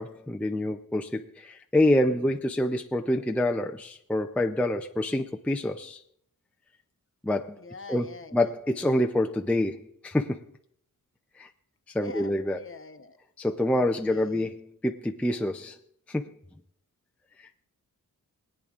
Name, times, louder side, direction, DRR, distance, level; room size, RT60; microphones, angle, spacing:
voice 1, 0.0-6.0 7.2-7.6 7.9-8.1 8.3-10.4 11.4-11.5 11.9-12.6 13.4-15.8 16.1-16.3 17.4-17.5, left 1 dB, 5° left, 4 dB, 0.5 m, -27 dB
voice 2, 7.6-8.5 12.0-13.2 14.0-14.5, left 4 dB, 35° left, 8 dB, 1.0 m, -45 dB
23.0 x 8.8 x 2.5 m, 0.70 s
cardioid pair, 85°, 35 cm